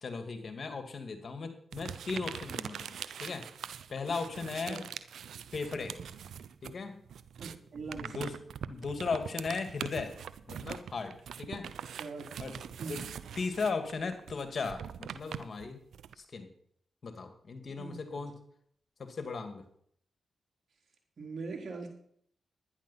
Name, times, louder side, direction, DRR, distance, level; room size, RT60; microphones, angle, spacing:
voice 1, 0.0-3.5 3.9-4.8 5.5-6.0 6.6-7.0 7.9-8.3 8.7-10.1 10.5-11.7 12.4-12.5 12.9-13.0 13.4-15.8 16.2-16.5 17.0-18.4 19.0-19.6, left 4 dB, 55° left, 7 dB, 2.3 m, -37 dB
sound 1, 1.7-6.8 7.1-16.1, right 8 dB, 80° right, 0.6 m, -43 dB
voice 2, 7.4-8.2 12.0-13.0 17.7-18.2 21.2-21.9, right 4 dB, 60° right, 1 dB, 3.9 m, -42 dB
11.5 x 10.5 x 5.8 m, 0.65 s
supercardioid pair, 50°, 0 cm